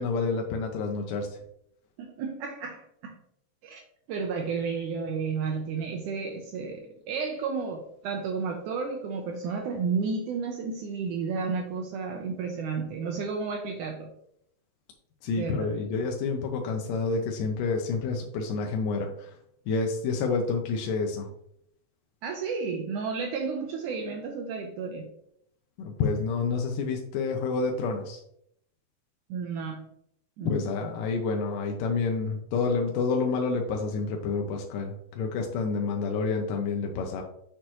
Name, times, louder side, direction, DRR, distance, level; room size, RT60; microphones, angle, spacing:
voice 1, 0.0-1.4 15.2-19.4 19.7-21.3 25.8-28.2 30.5-37.2, left 4 dB, 75° left, 2 dB, 2.2 m, -29 dB
voice 2, 2.0-3.2 3.6-3.8 4.1-14.1 15.4-15.7 22.2-25.1 29.3-29.9 30.4-30.7, right 5 dB, 80° right, 3 dB, 1.8 m, -32 dB
6.5 x 6.1 x 3.0 m, 0.73 s
omnidirectional pair, 4.2 m